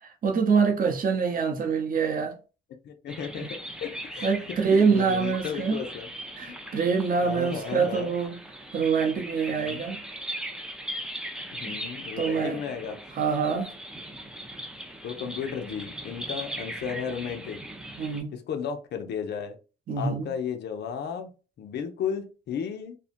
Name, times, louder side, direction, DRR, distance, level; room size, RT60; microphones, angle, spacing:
voice 1, 0.0-2.4 4.2-5.8 6.4-8.4 8.7-10.0 11.7-11.8 12.2-12.6 13.1-13.7 18.0-18.3 19.9-20.3, right 5 dB, 45° right, 0.7 m, -25 dB
voice 2, 2.8-3.5 3.8-6.1 6.5-6.6 7.2-8.1 9.5-9.8 11.6-13.0 13.5-13.6 15.0-17.6 18.3-19.6 20.0-21.3 21.6-23.0, left 7 dB, 60° left, 0.5 m, -34 dB
sound 1, 3.1-18.2, right 1 dB, 5° right, 0.5 m, -39 dB
2.6 x 2.1 x 2.5 m
cardioid pair, 90°, 20 cm